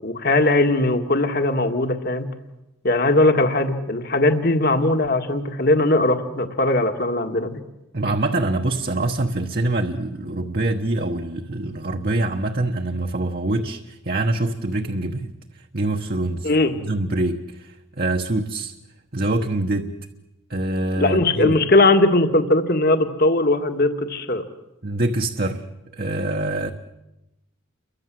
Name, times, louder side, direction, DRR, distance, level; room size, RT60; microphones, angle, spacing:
voice 1, 0.0-2.3 2.8-7.6 16.4-16.7 21.0-24.4, left 2 dB, 50° left, 7 dB, 1.9 m, -19 dB
voice 2, 7.9-15.3 15.7-16.5 16.8-18.7 19.1-19.9 20.5-21.6 24.8-25.6 25.9-26.7, right 2 dB, 45° right, 4 dB, 1.2 m, -24 dB
29.5 x 23.5 x 7.7 m, 0.97 s
head